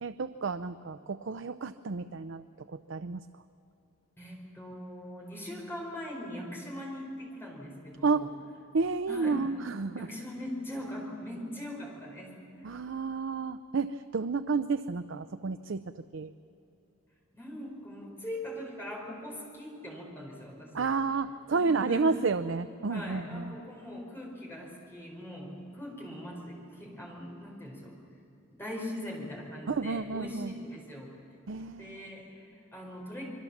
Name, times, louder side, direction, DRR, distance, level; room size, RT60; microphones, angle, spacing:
voice 1, 0.0-3.3 8.0-8.3 8.7-10.1 12.6-16.3 20.7-23.6 29.7-30.5 31.5-32.1, right 4 dB, 65° right, 11 dB, 0.5 m, -31 dB
voice 2, 4.2-8.3 9.1-9.4 10.0-12.7 17.3-21.0 21.7-22.1 22.9-28.0 28.5-31.1 31.8-33.3, left 1 dB, 10° left, -2 dB, 4.7 m, -41 dB
26.0 x 23.0 x 7.2 m, 2.7 s
head